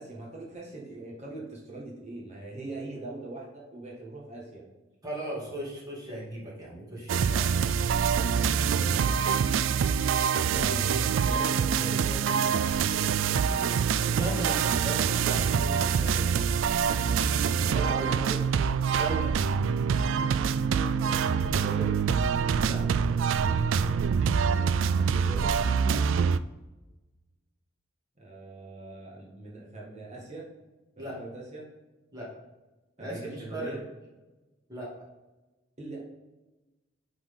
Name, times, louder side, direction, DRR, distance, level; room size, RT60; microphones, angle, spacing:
voice 1, 0.0-4.6 8.7-9.7 10.3-13.8 17.6-18.4 20.9-21.9 24.9-25.5 28.2-30.5 31.0-31.7 33.0-33.8 35.8-36.0, right 2 dB, 35° right, -3 dB, 1.6 m, -41 dB
voice 2, 5.0-7.6 14.0-16.3 17.7-17.9 19.0-19.3 22.6-22.8 25.8-26.0 31.0-31.2 32.1-32.3 33.0-33.8 34.7-34.9, right 1 dB, 20° right, -5 dB, 2.3 m, -37 dB
sound 1, 7.1-26.4, right 6 dB, 75° right, 0.3 m, -25 dB
9.1 x 4.0 x 3.7 m, 1.1 s
head